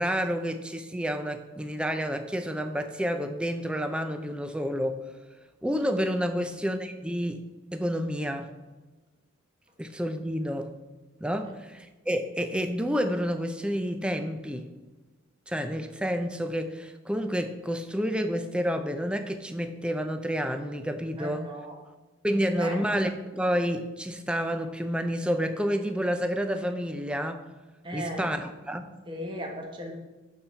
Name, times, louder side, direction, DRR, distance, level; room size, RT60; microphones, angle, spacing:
voice 1, 0.0-5.0 5.6-7.4 7.7-8.5 9.8-10.7 11.2-14.7 15.5-21.5 22.2-27.5 27.9-29.0, equal, 5° right, 7 dB, 0.4 m, -29 dB
voice 2, 21.2-21.8 22.3-22.8 27.8-28.4 29.1-29.9, equal, 25° right, 2 dB, 1.1 m, -37 dB
11.5 x 4.1 x 4.4 m, 1.2 s
head